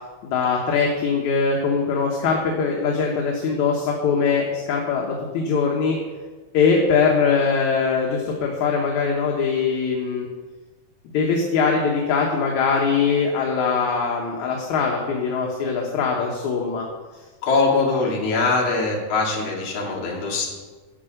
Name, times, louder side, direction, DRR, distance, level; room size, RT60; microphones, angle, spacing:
voice 1, 0.2-6.0 6.5-10.3 11.1-16.8, left 5 dB, 65° left, 0 dB, 2.2 m, -22 dB
voice 2, 17.4-20.5, left 3 dB, 50° left, -3 dB, 2.9 m, -22 dB
11.5 x 5.5 x 7.7 m, 1.4 s
omnidirectional pair, 4.0 m